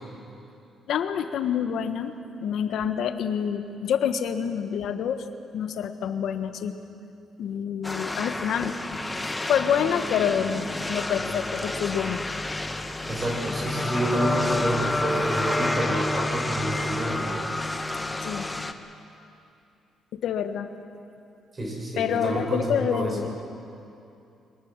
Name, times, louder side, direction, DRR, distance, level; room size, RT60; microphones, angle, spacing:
voice 1, 0.9-2.1 2.4-5.2 5.5-6.8 7.4-8.8 9.5-12.2 18.2-18.5 20.1-20.7 22.0-23.4, left 8 dB, 75° left, 8 dB, 1.4 m, -27 dB
sound 1, 7.8-18.7, left 2 dB, 15° left, 1.3 m, -29 dB
voice 2, 13.1-17.4 21.5-23.2, right 1 dB, 30° right, 0 dB, 6.4 m, -29 dB
24.0 x 20.0 x 7.5 m, 2.7 s
cardioid pair, 90°, 0 cm